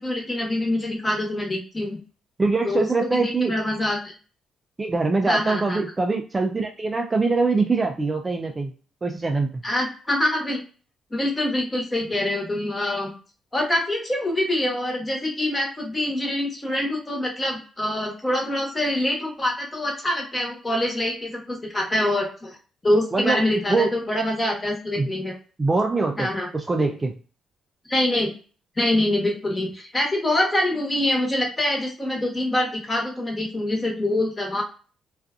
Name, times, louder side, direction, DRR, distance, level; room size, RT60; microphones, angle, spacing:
voice 1, 0.0-2.0 2.6-4.1 5.3-5.8 9.6-10.6 11.1-13.1 13.5-22.6 22.8-25.3 26.2-26.5 27.9-28.3 28.8-34.6, left 1 dB, 20° left, 0 dB, 1.1 m, -25 dB
voice 2, 2.4-3.5 4.8-8.7 9.0-9.6 23.1-23.4 23.7-23.9 25.0-25.1 25.6-27.2, right 3 dB, 25° right, 3 dB, 0.3 m, -23 dB
2.4 x 2.4 x 2.4 m, 0.38 s
cardioid pair, 90°, 0 cm